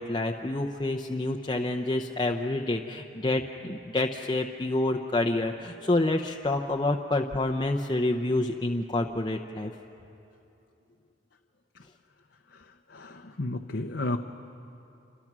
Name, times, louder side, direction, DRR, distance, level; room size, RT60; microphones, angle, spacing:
voice 1, 0.0-9.7, left 2 dB, 25° left, 1 dB, 0.7 m, -28 dB
voice 2, 12.9-14.2, left 2 dB, 65° left, 2 dB, 0.8 m, -32 dB
28.0 x 25.5 x 6.1 m, 2.8 s
head